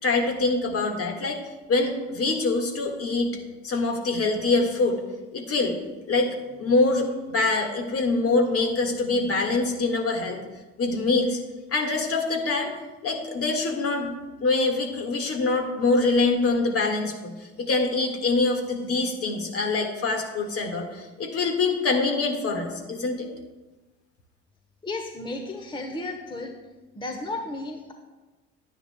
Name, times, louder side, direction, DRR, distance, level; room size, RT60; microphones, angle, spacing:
voice 1, 0.0-1.4 1.7-3.3 3.6-5.0 5.3-5.7 6.1-10.4 10.8-11.4 11.7-12.7 13.0-14.1 14.4-23.3, left 3 dB, 45° left, 3 dB, 1.7 m, -24 dB
voice 2, 24.8-26.5 26.9-27.9, left 2 dB, 15° left, 4 dB, 1.0 m, -33 dB
11.5 x 9.8 x 2.2 m, 1.2 s
hypercardioid pair, 60°, 33 cm